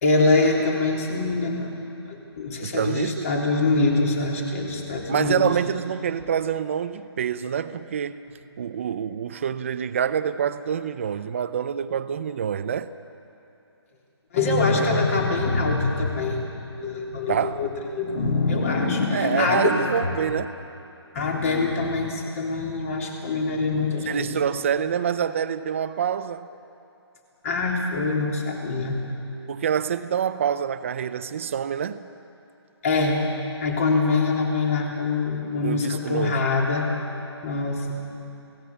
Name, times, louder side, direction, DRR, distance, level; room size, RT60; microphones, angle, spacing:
voice 1, 0.0-1.7 2.1-5.5 14.3-16.4 16.8-19.7 21.1-24.4 27.4-29.0 32.8-33.2 33.6-36.9 37.4-37.9, left 3 dB, 30° left, 0 dB, 3.4 m, -24 dB
voice 2, 2.6-3.3 5.1-8.2 8.6-12.9 17.3-17.6 19.1-20.5 24.1-26.5 29.5-32.1 35.6-36.5, right 8 dB, 30° right, 12 dB, 0.6 m, -26 dB
30.0 x 17.5 x 7.2 m, 2.8 s
hypercardioid pair, 170°, 14 cm